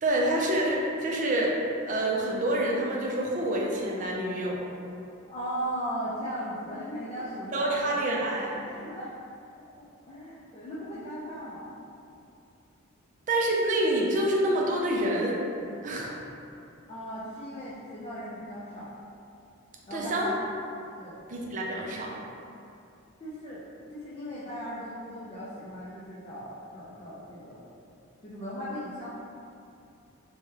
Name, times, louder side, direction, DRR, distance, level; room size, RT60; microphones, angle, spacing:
voice 1, 0.0-1.5 1.9-4.6 7.5-8.6 13.3-15.4 15.8-16.1 19.9-20.3 21.3-22.1, right 1 dB, 35° right, -2 dB, 0.4 m, -27 dB
voice 2, 5.3-8.0 8.6-9.1 9.5-11.8 16.9-18.9 19.9-20.4 21.0-21.3 23.2-27.6 28.2-29.1, equal, 30° left, -10 dB, 0.4 m, -37 dB
3.1 x 2.2 x 3.2 m, 2.6 s
head